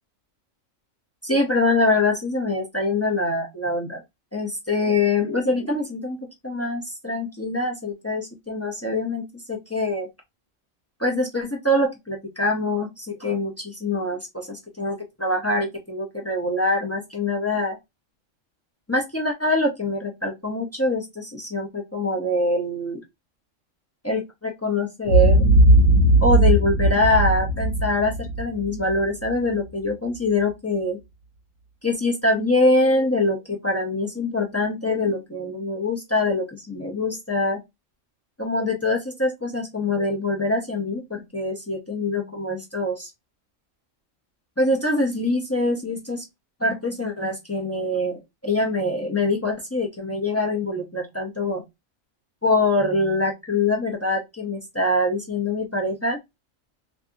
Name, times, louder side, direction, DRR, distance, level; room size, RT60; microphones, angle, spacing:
voice 1, 1.2-4.0 4.3-6.2 6.4-10.1 11.0-17.8 18.9-23.0 24.0-25.4 26.2-31.0 31.8-37.6 38.4-43.1 44.6-46.2 46.6-51.6 52.4-56.2, left 2 dB, 25° left, 0 dB, 0.3 m, -24 dB
Boom, 25.0-29.3, right 1 dB, 80° left, 1.0 m, -18 dB
2.7 x 2.6 x 2.2 m, 0.19 s
omnidirectional pair, 1.3 m